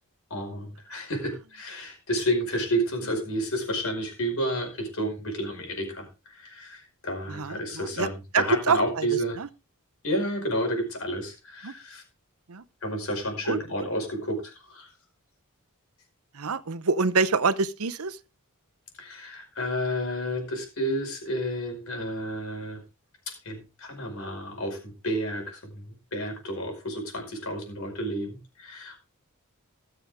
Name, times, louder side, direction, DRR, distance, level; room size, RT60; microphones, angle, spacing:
voice 1, 0.3-9.4 10.0-12.0 12.8-14.9 19.0-22.8 23.3-29.0, equal, 65° left, 5.0 m, -31 dB
voice 2, 7.3-8.1 8.3-9.5 11.6-11.7 12.5-12.6 13.5-13.9 16.3-18.2, right 4 dB, 70° right, 0.8 m, -26 dB
20.0 x 7.1 x 3.6 m
head